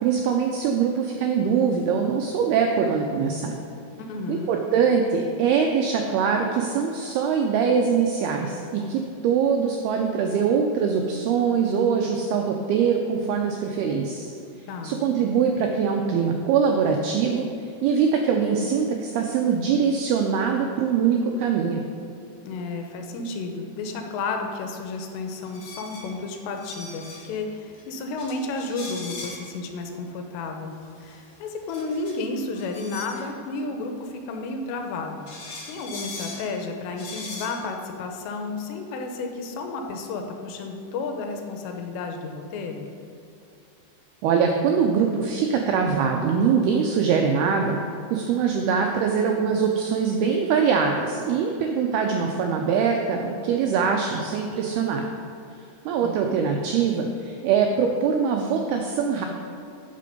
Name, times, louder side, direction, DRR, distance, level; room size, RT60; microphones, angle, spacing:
voice 1, 0.0-3.5 4.3-14.3 14.8-21.8 44.2-47.8 48.1-55.1 55.9-59.3, right 6 dB, 85° right, 2 dB, 2.2 m, -23 dB
voice 2, 3.9-4.5 14.7-15.0 22.4-35.3 35.7-42.9 56.0-56.3, left 3 dB, 80° left, 4 dB, 2.9 m, -32 dB
sound 1, 25.4-27.3 27.7-27.8 28.2-29.5 30.8-33.3 34.8-34.9 35.3-36.5 36.9-37.6, left 3 dB, 50° left, 2.3 m, -40 dB
8.6 x 6.7 x 5.3 m, 2.7 s
omnidirectional pair, 5.2 m